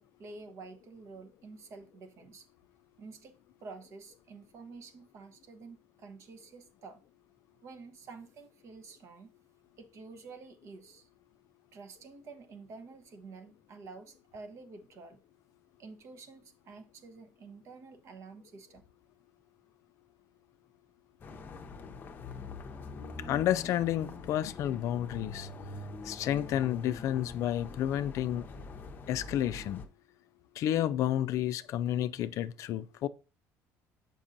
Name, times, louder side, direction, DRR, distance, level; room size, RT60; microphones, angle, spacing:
voice 1, 0.0-2.5 3.0-7.0 7.6-9.3 9.8-11.1 11.7-15.2 15.8-18.8, right 4 dB, 50° right, 1.0 m, -49 dB
sound 1, 21.2-29.9, left 3 dB, 30° left, 0.7 m, -44 dB
voice 2, 23.2-25.5 26.1-28.4 29.1-29.8 30.6-33.1, left 11 dB, 55° left, 0.4 m, -30 dB
7.1 x 5.2 x 2.6 m
cardioid pair, 130°, 6 cm